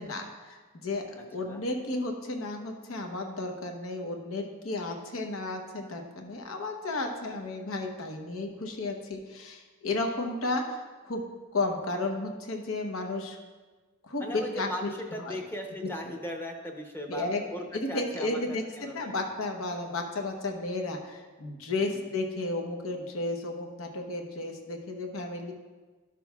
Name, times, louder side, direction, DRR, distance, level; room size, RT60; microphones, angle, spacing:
voice 1, 0.0-11.2 11.5-13.4 14.0-14.9 15.2-15.4 16.1-16.2 17.1-17.4 17.7-25.5, left 2 dB, 90° left, 3 dB, 0.9 m, -33 dB
voice 2, 14.2-17.2 17.5-18.4 18.8-19.2 21.8-22.0, equal, 10° left, 2 dB, 0.6 m, -38 dB
12.0 x 6.1 x 2.3 m, 1.3 s
head